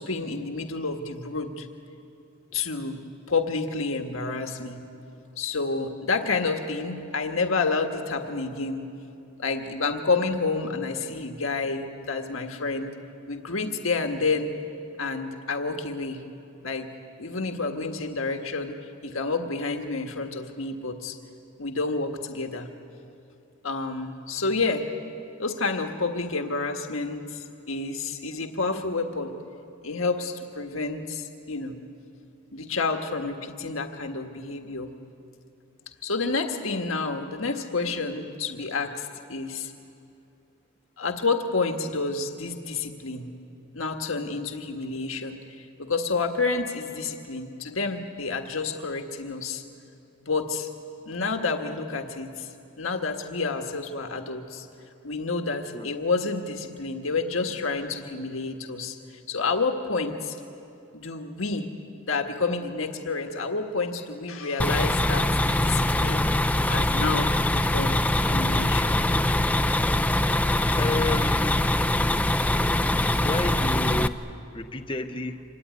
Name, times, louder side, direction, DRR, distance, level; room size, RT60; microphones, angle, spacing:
voice 1, 0.0-1.7 2.5-3.0 3.3-4.8 5.4-8.9 9.4-12.9 13.3-14.5 15.0-16.2 16.6-16.9 17.2-18.8 19.0-21.2 21.6-22.7 23.6-24.9 25.4-29.3 29.8-31.8 32.5-34.9 36.0-39.7 41.0-43.3 43.7-49.6 50.2-50.7 51.0-52.5 52.8-54.7 55.0-59.0 59.3-60.4 60.9-61.7 62.0-66.3 66.7-69.0, left 4 dB, 75° left, 4 dB, 1.6 m, -29 dB
sound 1, 64.6-74.1, left 1 dB, 5° left, 0.5 m, -23 dB
voice 2, 70.8-71.8 73.2-75.4, left 2 dB, 25° left, 5 dB, 0.9 m, -31 dB
26.5 x 23.0 x 9.6 m, 2.8 s
head